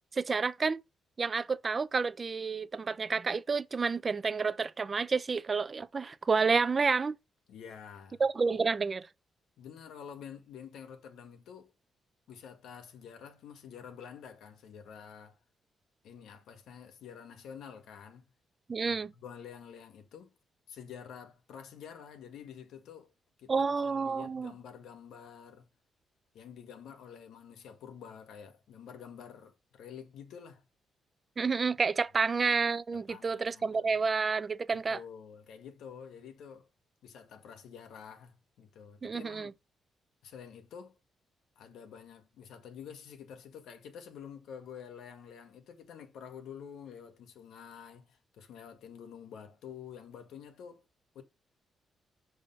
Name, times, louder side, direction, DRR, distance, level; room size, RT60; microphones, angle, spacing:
voice 1, 0.1-0.8 1.2-7.2 8.2-9.0 18.7-19.1 23.5-24.5 31.4-35.0 39.0-39.5, right 4 dB, 35° right, 0.4 m, -29 dB
voice 2, 7.5-8.2 8.5-8.6 9.6-11.7 12.3-15.4 16.0-18.2 18.8-20.3 20.7-23.1 23.4-25.7 26.3-30.6 32.9-33.9 34.7-36.7 37.0-39.5 40.2-41.0 41.6-50.8 51.1-51.2, left 7 dB, 90° left, 1.1 m, -48 dB
5.4 x 3.5 x 5.2 m
cardioid pair, 120°, 0 cm